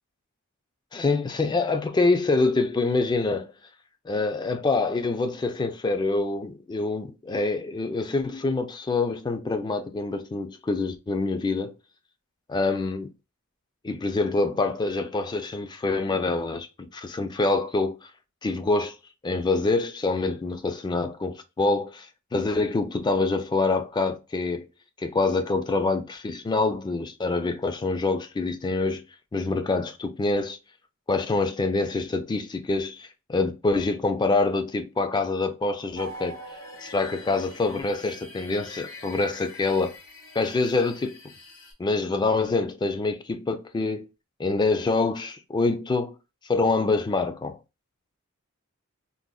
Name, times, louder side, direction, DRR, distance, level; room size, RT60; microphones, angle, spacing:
voice 1, 0.9-3.5 4.1-11.7 12.5-13.1 13.8-16.7 16.9-18.1 18.4-19.0 19.2-22.1 22.3-24.7 25.0-29.0 29.3-30.6 31.1-36.4 36.8-39.9 40.3-41.2 41.8-44.1 44.4-46.1 46.5-47.6, left 3 dB, 20° left, 0.3 m, -26 dB
sound 1, 35.9-41.7, equal, 70° left, 1.2 m, -44 dB
3.8 x 2.0 x 2.3 m
head